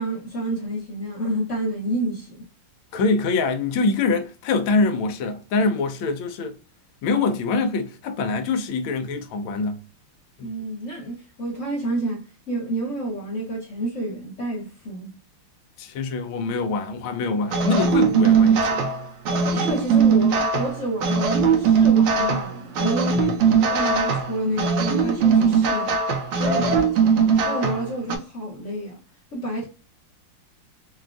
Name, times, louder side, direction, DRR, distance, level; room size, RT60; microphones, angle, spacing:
voice 1, 0.0-2.5 10.4-15.1 19.5-23.2 23.7-26.0 26.4-27.2 27.5-29.0 29.3-29.7, right 1 dB, 55° left, 0.9 m, -29 dB
voice 2, 2.9-6.6 7.0-9.8 10.4-10.5 15.8-18.8 23.1-23.6 26.6-26.8, left 3 dB, 80° left, 1.4 m, -24 dB
sound 1, 17.5-28.2, right 5 dB, 80° right, 1.5 m, -20 dB
3.9 x 2.3 x 2.4 m
omnidirectional pair, 2.3 m